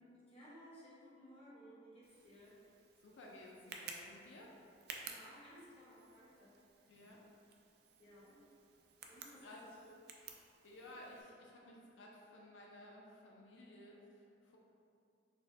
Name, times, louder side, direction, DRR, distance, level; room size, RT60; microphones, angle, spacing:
voice 1, 0.3-2.6 5.0-7.1 8.0-8.4 9.1-9.9 10.7-10.9, equal, 30° left, -8 dB, 0.7 m, -59 dB
Tick, 2.0-11.2, right 5 dB, 55° right, 0.3 m, -55 dB
voice 2, 3.0-4.5 6.9-7.2 9.4-9.8 10.6-14.6, left 1 dB, 85° left, -2 dB, 0.4 m, -56 dB
4.0 x 2.5 x 2.3 m, 2.4 s
head